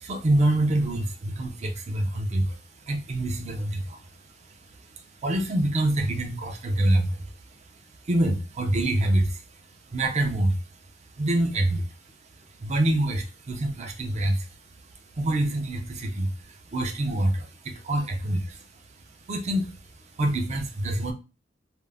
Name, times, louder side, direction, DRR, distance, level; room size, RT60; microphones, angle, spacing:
voice 1, 0.0-2.6 2.9-4.0 5.2-7.2 8.0-9.4 9.9-10.6 11.2-11.9 12.6-14.5 15.2-18.6 19.3-19.7 20.2-21.1, right 1 dB, 35° right, 4 dB, 0.5 m, -25 dB
2.4 x 2.0 x 3.3 m, 0.30 s
head